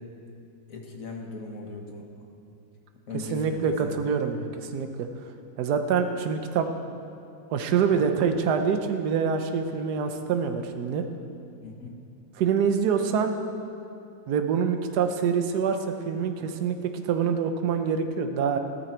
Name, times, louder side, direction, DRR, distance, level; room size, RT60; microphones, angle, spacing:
voice 1, 0.7-2.0 3.1-3.9 11.6-12.0, left 3 dB, 45° left, 1 dB, 1.7 m, -38 dB
voice 2, 3.1-5.1 5.6-6.7 7.5-11.0 12.3-13.3 14.3-18.6, right 6 dB, 60° right, 6 dB, 1.3 m, -26 dB
15.0 x 13.0 x 4.5 m, 2.6 s
omnidirectional pair, 2.1 m